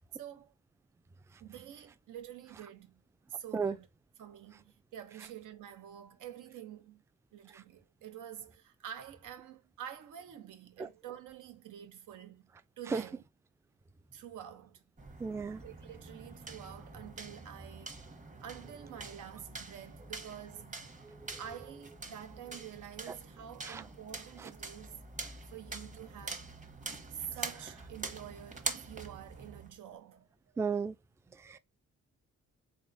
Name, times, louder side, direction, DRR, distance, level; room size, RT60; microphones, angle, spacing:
voice 1, 0.1-0.5 1.4-3.0 3.3-3.9 4.2-7.0 7.3-12.5 12.8-13.2 14.1-14.8 15.6-18.0 18.4-20.8 21.4-25.1 25.5-26.5 27.1-30.3, right 10 dB, 90° right, 0.8 m, -47 dB
sound 1, 15.0-29.7, right 3 dB, 25° right, 1.0 m, -45 dB
voice 2, 15.2-15.6 21.0-21.1 23.7-23.8 30.6-30.9 31.5-31.6, right 5 dB, 10° right, 0.3 m, -33 dB
3.6 x 3.0 x 2.6 m
cardioid pair, 75°, 30 cm